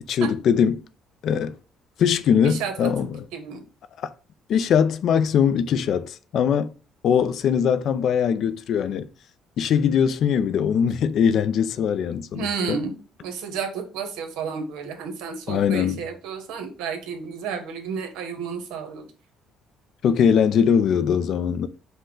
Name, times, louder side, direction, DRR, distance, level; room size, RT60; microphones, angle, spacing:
voice 1, 0.1-0.8 1.2-1.6 2.0-3.2 4.0-4.1 4.5-6.7 7.0-9.1 9.6-12.8 15.5-16.0 20.0-21.7, left 7 dB, 60° left, 0.3 m, -21 dB
voice 2, 2.4-2.9 3.3-3.6 12.3-12.9 13.2-19.1, right 6 dB, 85° right, 1.0 m, -31 dB
5.3 x 2.2 x 3.7 m
cardioid pair, 110°, 0 cm